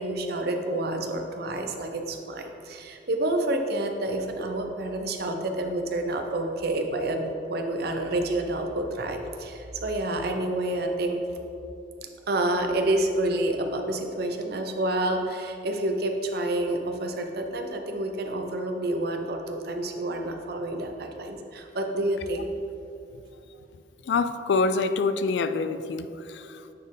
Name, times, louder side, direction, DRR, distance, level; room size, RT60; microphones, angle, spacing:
voice 1, 0.0-7.2 7.5-11.2 12.3-22.5, right 1 dB, 60° right, 4 dB, 0.7 m, -28 dB
voice 2, 24.1-26.1 26.3-26.4, left 4 dB, 70° left, 10 dB, 0.3 m, -25 dB
9.0 x 4.4 x 3.6 m, 2.7 s
head